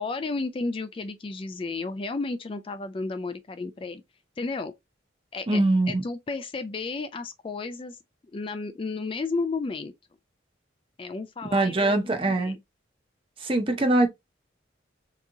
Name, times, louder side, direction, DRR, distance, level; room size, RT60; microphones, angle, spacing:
voice 1, 0.0-4.0 4.4-4.7 5.3-8.0 8.3-9.9 11.0-12.6, left 3 dB, 30° left, 0.3 m, -33 dB
voice 2, 5.5-6.0 11.5-12.6 13.4-14.1, right 2 dB, 30° right, 0.7 m, -22 dB
3.5 x 3.0 x 2.5 m
head